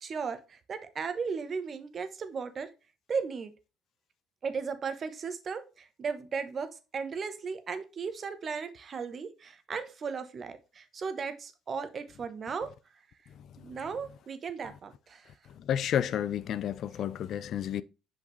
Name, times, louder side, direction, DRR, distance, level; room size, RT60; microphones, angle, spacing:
voice 1, 0.0-2.7 3.1-3.5 4.4-12.7 13.6-15.3, right 5 dB, 45° right, 1.0 m, -36 dB
voice 2, 15.5-17.8, left 10 dB, 60° left, 0.4 m, -31 dB
5.8 x 5.1 x 3.2 m
hypercardioid pair, 60°, 0 cm